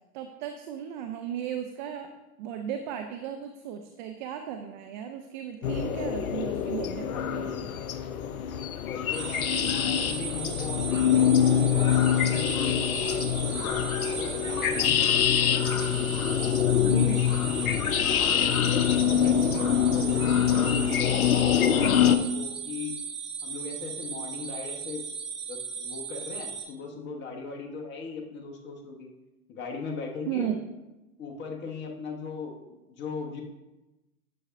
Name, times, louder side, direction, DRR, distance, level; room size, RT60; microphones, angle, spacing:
voice 1, 0.1-2.1 2.4-7.7 16.8-17.3 30.2-30.7, right 9 dB, 35° right, 6 dB, 0.5 m, -35 dB
sound 1, 5.6-22.2, left 9 dB, 70° left, 0.7 m, -25 dB
voice 2, 8.7-15.5 16.9-17.2 17.8-20.8 21.3-22.9 23.4-25.0 25.5-29.1 29.5-30.5 31.2-33.4, left 4 dB, 25° left, 1 dB, 1.2 m, -38 dB
sound 2, 9.1-26.6, right 6 dB, 85° right, 2.4 m, -37 dB
11.0 x 7.0 x 2.6 m, 1.0 s
hypercardioid pair, 110°, 44 cm